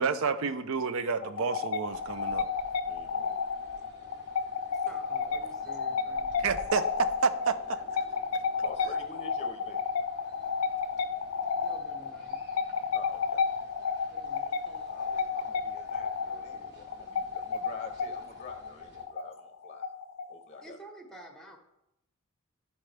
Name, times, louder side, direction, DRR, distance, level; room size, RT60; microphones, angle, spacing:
voice 1, 0.0-2.5 6.4-7.8, right 5 dB, 70° right, 0.5 m, -30 dB
sound 1, 1.2-20.6, left 5 dB, 90° left, 0.4 m, -32 dB
sound 2, 1.8-19.1, equal, 55° right, 1.5 m, -55 dB
voice 2, 2.8-3.4 4.0-4.1 4.3-4.9 5.4-5.8 8.6-9.8 12.9-13.5 14.9-19.9 20.2-20.8, left 3 dB, 30° left, 0.7 m, -48 dB
voice 3, 4.7-6.5 11.6-12.4 14.1-15.0 20.6-21.6, right 1 dB, ahead, 1.0 m, -51 dB
12.0 x 4.3 x 3.3 m
head